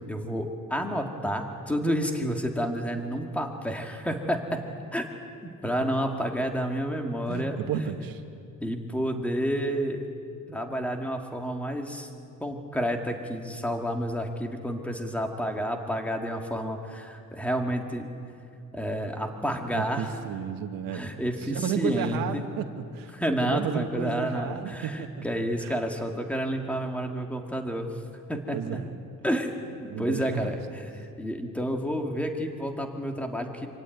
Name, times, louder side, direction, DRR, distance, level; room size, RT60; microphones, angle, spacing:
voice 1, 0.0-4.6 4.9-5.1 5.4-7.6 8.6-10.0 10.5-12.1 12.4-18.1 18.7-20.1 20.9-22.5 23.1-27.9 28.3-28.8 29.2-33.7, equal, 5° left, 3 dB, 2.0 m, -30 dB
voice 2, 7.3-8.2 9.1-9.2 19.7-23.1 23.4-25.7 28.5-28.9 29.9-30.6, right 8 dB, 85° right, 5 dB, 1.6 m, -33 dB
26.0 x 17.0 x 9.2 m, 2.5 s
cardioid pair, 155°, 33 cm